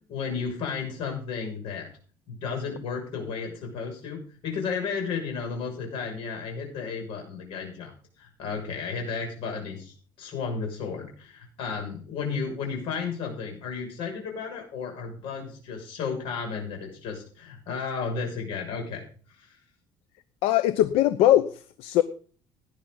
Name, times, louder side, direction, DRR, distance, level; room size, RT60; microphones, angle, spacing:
voice 1, 0.1-1.9 2.3-7.9 8.2-19.0 19.4-19.5, left 5 dB, 70° left, 2 dB, 6.6 m, -33 dB
voice 2, 20.4-22.0, left 13 dB, 85° left, 13 dB, 0.8 m, -21 dB
18.0 x 10.5 x 4.0 m, 0.42 s
cardioid pair, 155°, 10 cm